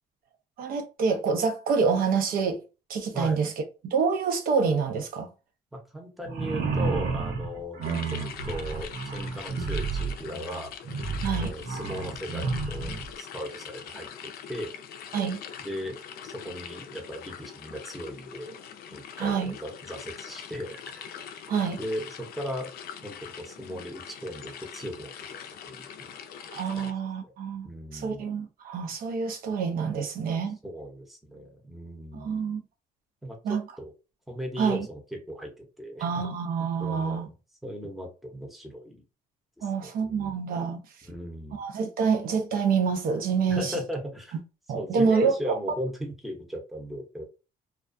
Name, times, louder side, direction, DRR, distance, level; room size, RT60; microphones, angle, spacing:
voice 1, 0.6-2.6 2.9-3.5 3.8-5.3 11.2-11.5 15.1-15.4 19.2-19.5 21.5-21.8 26.5-27.7 27.9-30.6 32.1-32.6 33.4-33.6 34.6-34.9 36.0-37.3 39.6-40.8 41.5-43.8 44.7-45.6, right 5 dB, 60° right, 0.5 m, -27 dB
voice 2, 5.7-7.8 8.1-10.7 11.4-12.9 13.2-14.7 15.6-18.6 18.9-21.1 21.7-22.7 23.0-25.1 25.6-26.1 26.7-26.9 27.2-27.3 27.6-28.2 30.6-32.4 33.2-33.9 34.3-36.0 36.8-37.3 37.6-39.0 39.6-40.3 41.1-41.6 43.5-44.4 44.7-47.2, equal, ahead, 0.7 m, -37 dB
sound 1, 6.2-13.1, right 4 dB, 80° right, 0.9 m, -31 dB
sound 2, 7.8-26.9, left 8 dB, 65° left, 0.4 m, -43 dB
2.3 x 2.2 x 2.5 m
cardioid pair, 110°, 17 cm